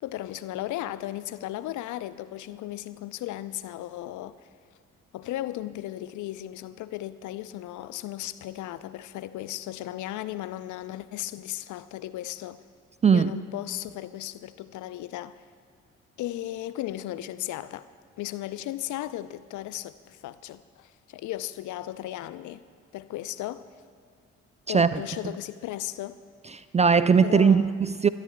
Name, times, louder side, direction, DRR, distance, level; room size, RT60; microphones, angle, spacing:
voice 1, 0.0-4.4 5.1-12.6 13.1-15.4 16.2-17.9 18.2-22.6 22.9-23.7 24.7-26.2 27.2-27.8, left 14 dB, 55° left, 0.5 m, -36 dB
voice 2, 26.7-28.1, right 6 dB, 20° right, 0.3 m, -19 dB
22.5 x 12.5 x 2.2 m
hypercardioid pair, 45°, 36 cm